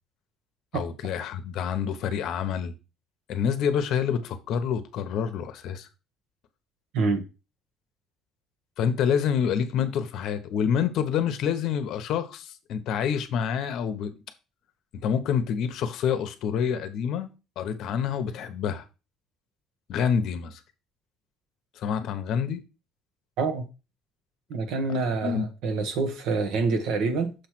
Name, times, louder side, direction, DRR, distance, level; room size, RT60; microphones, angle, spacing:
voice 1, 0.7-2.7 3.3-5.9 8.8-14.1 14.9-17.3 17.6-18.8 19.9-20.6 21.8-22.6 25.2-25.4, left 7 dB, 55° left, 0.9 m, -27 dB
voice 2, 24.5-27.3, right 4 dB, 75° right, 1.4 m, -26 dB
6.6 x 3.2 x 5.9 m
cardioid pair, 165°, 0 cm